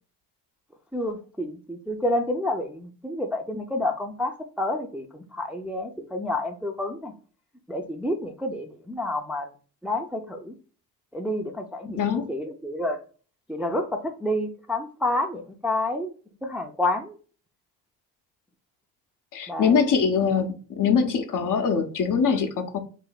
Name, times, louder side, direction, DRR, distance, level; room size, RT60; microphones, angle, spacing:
voice 1, 0.9-7.1 7.7-9.5 9.8-10.5 11.1-13.0 13.5-16.1 16.4-17.2 19.5-19.8, left 1 dB, 5° right, 0.5 m, -29 dB
voice 2, 12.0-12.3 19.3-22.8, left 6 dB, 45° left, 0.7 m, -23 dB
3.3 x 2.1 x 3.9 m
supercardioid pair, 60°, 43 cm